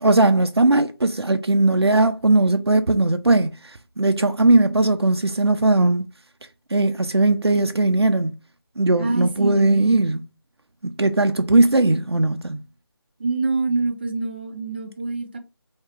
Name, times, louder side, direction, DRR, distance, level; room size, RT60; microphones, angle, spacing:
voice 1, 0.0-6.0 6.7-8.3 8.8-10.2 10.8-12.6, right 2 dB, 90° right, 0.5 m, -19 dB
voice 2, 9.0-9.9 13.2-15.4, right 3 dB, 25° right, 0.5 m, -25 dB
4.5 x 2.8 x 3.3 m
figure-of-eight pair, 155°, 13 cm